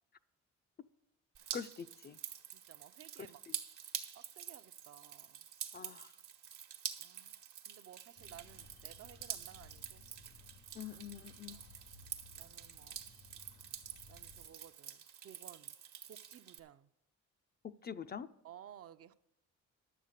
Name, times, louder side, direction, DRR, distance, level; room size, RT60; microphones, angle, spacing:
Drip, 1.3-16.6, right 9 dB, 85° right, 1.2 m, -47 dB
voice 1, 1.5-2.2 3.5-3.6 5.7-6.1 10.7-11.6 17.6-18.3, left 7 dB, 35° left, 0.4 m, -45 dB
voice 2, 2.5-3.4 4.1-5.5 7.0-10.1 11.5-11.6 12.3-13.0 14.1-15.8 16.1-16.9 18.4-19.1, right 10 dB, 50° right, 0.6 m, -57 dB
sound 1, 8.2-14.5, left 4 dB, 90° left, 1.9 m, -60 dB
11.0 x 7.4 x 6.5 m
cardioid pair, 90°, 30 cm